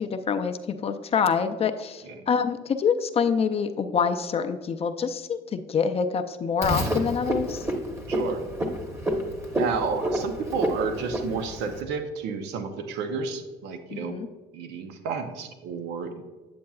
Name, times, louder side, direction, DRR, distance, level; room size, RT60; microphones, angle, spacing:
voice 1, 0.0-7.7 13.9-14.3, left 6 dB, 35° left, 8 dB, 0.4 m, -26 dB
Frog, 6.6-11.8, right 1 dB, 15° right, 1.0 m, -29 dB
voice 2, 8.1-8.4 9.6-14.2 14.5-16.2, right 5 dB, 85° right, 7 dB, 0.7 m, -31 dB
8.6 x 7.4 x 2.3 m, 1.3 s
cardioid pair, 110°, 17 cm